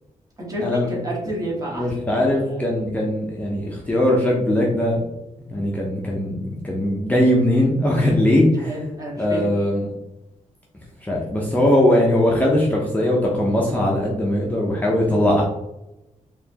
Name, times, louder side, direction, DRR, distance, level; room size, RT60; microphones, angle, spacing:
voice 1, 0.4-2.6 8.6-9.5, right 1 dB, 25° right, -3 dB, 1.2 m, -30 dB
voice 2, 1.7-5.0 5.5-8.8 9.2-9.9 11.0-15.4, left 1 dB, 10° left, -3 dB, 0.6 m, -20 dB
4.1 x 2.9 x 2.8 m, 0.93 s
wide cardioid pair, 170°, 13 cm